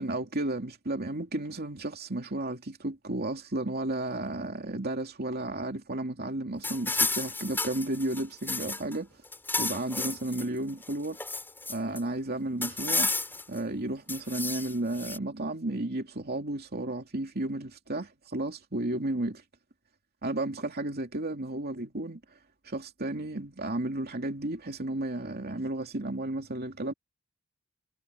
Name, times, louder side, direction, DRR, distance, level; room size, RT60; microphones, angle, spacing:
voice 1, 0.0-9.1 9.6-11.2 11.7-13.1 13.5-19.4 20.2-22.2 22.6-26.9, right 2 dB, 45° right, 2.7 m, -33 dB
sound 1, 6.6-9.0 9.2-10.5 10.8-12.0 12.6-13.6 14.1-15.2, left 3 dB, 10° left, 5.1 m, -32 dB
head